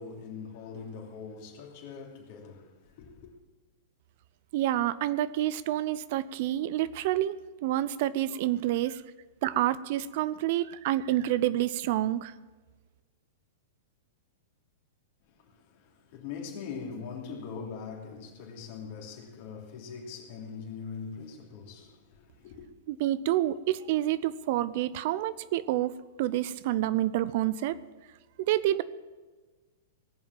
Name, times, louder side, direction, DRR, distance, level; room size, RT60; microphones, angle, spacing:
voice 1, 0.0-3.3 15.3-22.7, left 5 dB, 55° left, 3.1 m, -42 dB
voice 2, 4.5-7.4 7.6-9.0 9.4-12.3 22.9-27.8 28.5-28.8, right 14 dB, 55° right, 0.6 m, -28 dB
19.0 x 7.3 x 7.5 m
hypercardioid pair, 110°, 0 cm